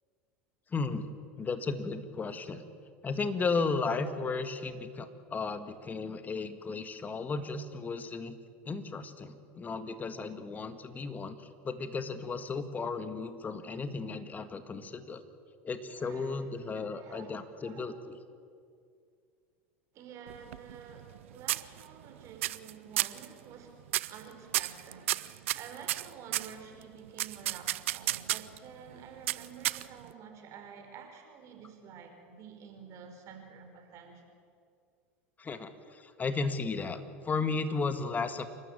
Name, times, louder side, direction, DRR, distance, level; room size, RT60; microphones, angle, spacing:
voice 1, 0.7-1.1 1.4-2.6 3.0-8.4 8.7-15.2 15.6-18.2 35.4-38.5, left 4 dB, 25° left, 10 dB, 1.8 m, -34 dB
voice 2, 15.9-17.3 17.6-17.8 19.9-23.8 24.1-25.1 25.5-34.2, right 6 dB, 45° right, 4 dB, 4.5 m, -49 dB
sound 1, 20.3-21.2 21.5-22.1 22.4-22.7 23.0-23.3 23.9-24.2 24.5-26.5 27.2-28.6 29.3-30.1, right 15 dB, 75° right, 0.6 m, -32 dB
28.5 x 13.0 x 8.7 m, 2.2 s
hypercardioid pair, 85°, 7 cm